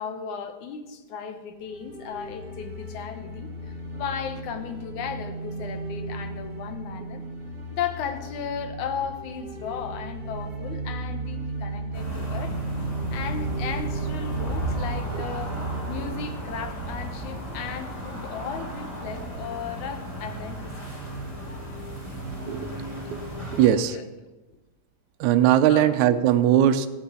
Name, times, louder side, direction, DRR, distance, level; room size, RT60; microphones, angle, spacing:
voice 1, 0.0-7.2 7.7-12.5 13.1-15.6 15.9-20.7 23.9-24.0 25.7-25.9, left 7 dB, 75° left, 8 dB, 2.5 m, -35 dB
sound 1, 1.6-17.7, right 2 dB, 30° right, 2.3 m, -35 dB
sound 2, 11.9-23.7, right 1 dB, 10° left, 3.8 m, -35 dB
voice 2, 23.5-24.0 25.2-26.9, right 11 dB, 75° right, 9 dB, 2.1 m, -19 dB
17.5 x 6.5 x 8.4 m, 1.1 s
omnidirectional pair, 3.5 m